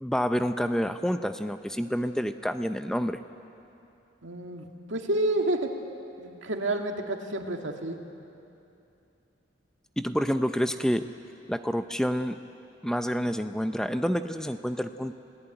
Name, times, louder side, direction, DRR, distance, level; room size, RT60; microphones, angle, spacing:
voice 1, 0.0-3.2 10.0-11.1 11.5-12.4 12.8-15.1, equal, 5° left, 8 dB, 0.6 m, -28 dB
voice 2, 4.2-4.6 4.9-5.7 6.2-8.0, right 1 dB, 90° right, 3 dB, 2.2 m, -29 dB
29.5 x 17.5 x 9.0 m, 2.8 s
head